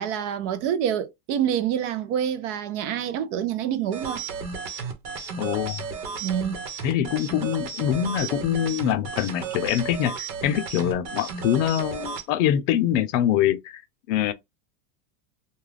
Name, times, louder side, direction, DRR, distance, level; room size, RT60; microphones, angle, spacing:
voice 1, 0.0-4.2 6.2-6.6, right 9 dB, 50° right, 0.5 m, -27 dB
sound 1, 3.9-12.2, right 5 dB, 80° right, 1.1 m, -34 dB
voice 2, 5.4-5.8 6.8-13.8 14.1-14.3, left 11 dB, 55° left, 0.5 m, -24 dB
2.3 x 2.3 x 3.2 m
supercardioid pair, 130°, 47 cm